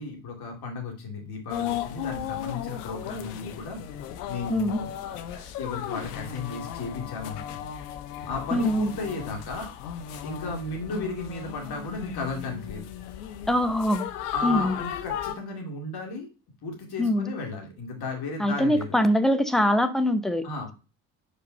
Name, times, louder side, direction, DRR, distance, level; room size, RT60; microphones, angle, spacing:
voice 1, 0.0-3.8 4.3-7.6 8.2-9.7 10.2-12.9 14.3-16.3 16.6-19.0 20.4-20.7, left 3 dB, 50° left, 2.4 m, -34 dB
sound 1, 1.5-15.3, left 10 dB, 75° left, 0.8 m, -36 dB
voice 2, 8.5-8.9 13.5-14.1 14.4-14.7 17.0-17.3 18.4-20.4, equal, ahead, 0.8 m, -23 dB
5.1 x 4.9 x 5.3 m
figure-of-eight pair, 45°, 47 cm